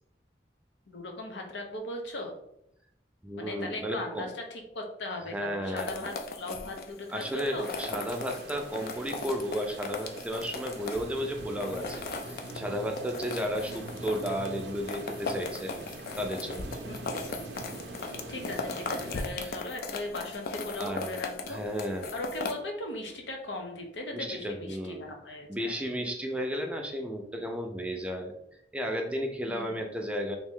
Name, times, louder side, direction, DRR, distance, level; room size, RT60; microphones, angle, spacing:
voice 1, 0.9-2.3 3.4-7.7 16.9-17.5 18.3-21.6 22.1-25.7 29.5-29.7, left 2 dB, 80° left, 2 dB, 0.7 m, -38 dB
voice 2, 3.2-4.3 5.3-5.9 7.1-12.0 12.3-15.7 16.2-16.7 19.4-19.6 20.8-21.0 21.5-22.1 24.1-25.1 25.5-28.3 28.7-30.4, equal, 5° right, 2 dB, 0.4 m, -33 dB
sound 1, 5.8-22.5, left 3 dB, 55° left, 0.4 m, -38 dB
sound 2, 7.6-19.2, right 2 dB, 70° right, 0.5 m, -43 dB
3.1 x 2.6 x 3.6 m, 0.76 s
head